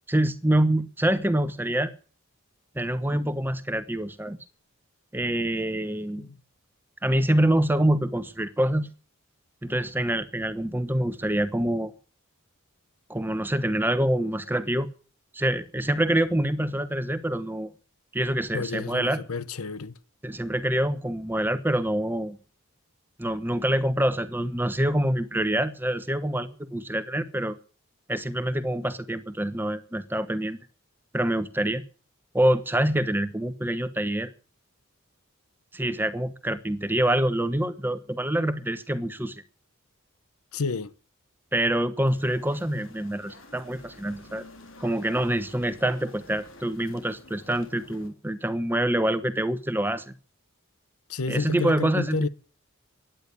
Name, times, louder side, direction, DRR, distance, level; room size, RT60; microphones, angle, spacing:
voice 1, 0.1-1.9 2.7-4.4 5.1-6.3 7.0-8.9 9.6-11.9 13.1-14.9 15.3-17.7 18.1-19.2 20.2-22.4 23.2-27.6 28.1-30.6 31.1-31.8 32.3-34.3 35.7-39.4 41.5-44.4 44.8-50.1 51.3-52.3, right 1 dB, 10° right, 1.1 m, -26 dB
voice 2, 18.5-20.0 40.5-40.9 51.1-52.3, left 4 dB, 90° left, 0.9 m, -30 dB
sound 1, 42.0-48.1, left 2 dB, 60° left, 3.8 m, -50 dB
15.5 x 10.5 x 8.4 m
head